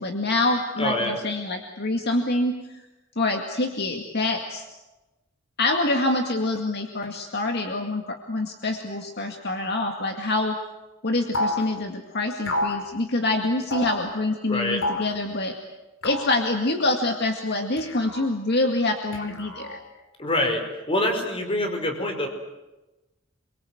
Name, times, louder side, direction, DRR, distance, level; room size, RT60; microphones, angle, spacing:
voice 1, 0.0-2.8 3.2-4.7 5.6-10.5 11.0-15.6 16.0-19.8, left 2 dB, 55° left, 4 dB, 2.2 m, -26 dB
voice 2, 0.8-1.2 14.5-14.8 20.2-22.3, left 1 dB, 30° left, 4 dB, 5.3 m, -25 dB
sound 1, 11.3-11.7 12.5-12.8 13.7-14.0 14.8-15.1 16.0-16.4 17.8-18.3 19.1-19.8, left 1 dB, 70° left, 4.4 m, -29 dB
28.0 x 23.5 x 8.0 m, 1.0 s
head